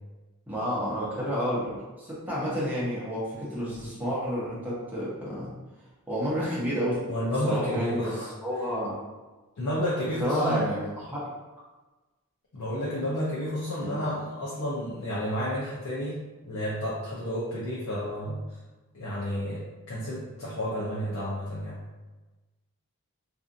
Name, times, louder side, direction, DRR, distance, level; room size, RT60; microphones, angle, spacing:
voice 1, 0.5-5.5 6.1-7.0 7.4-8.2 8.4-9.0 10.2-10.8 11.1-11.3 13.8-14.1, equal, 10° right, -9 dB, 0.8 m, -30 dB
voice 2, 7.1-8.3 9.6-10.7 12.5-18.4 18.9-21.8, equal, 85° left, -8 dB, 0.6 m, -31 dB
2.6 x 2.4 x 2.5 m, 1.2 s
head